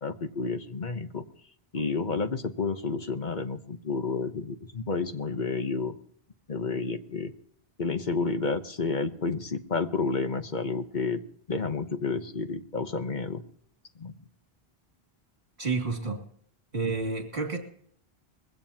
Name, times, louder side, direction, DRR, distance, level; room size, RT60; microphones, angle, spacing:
voice 1, 0.0-1.2 1.7-5.9 6.5-7.3 7.8-11.2 11.5-13.4 14.0-14.1, left 4 dB, 50° left, 8 dB, 1.1 m, -30 dB
voice 2, 15.6-16.2 16.7-17.6, right 3 dB, 50° right, 3 dB, 2.7 m, -30 dB
21.5 x 16.5 x 2.9 m, 0.63 s
omnidirectional pair, 1.0 m